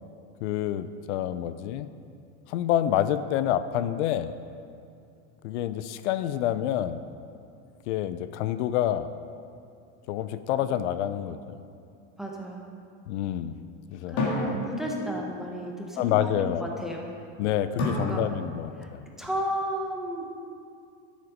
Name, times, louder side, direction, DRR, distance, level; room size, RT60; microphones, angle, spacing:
voice 1, 0.4-1.9 2.5-4.3 5.4-7.0 7.9-9.1 10.1-11.4 13.1-13.6 13.9-14.2 16.0-16.6 17.4-19.0, left 11 dB, 70° left, 13 dB, 0.5 m, -27 dB
sound 1, 10.5-12.1 14.2-15.5 17.8-18.9, left 2 dB, 40° left, 1.9 m, -33 dB
voice 2, 12.2-12.7 14.1-17.1 17.9-18.3 18.8-18.9 19.2-20.3, equal, ahead, -1 dB, 0.7 m, -33 dB
11.5 x 7.2 x 5.1 m, 2.5 s
supercardioid pair, 165°, 36 cm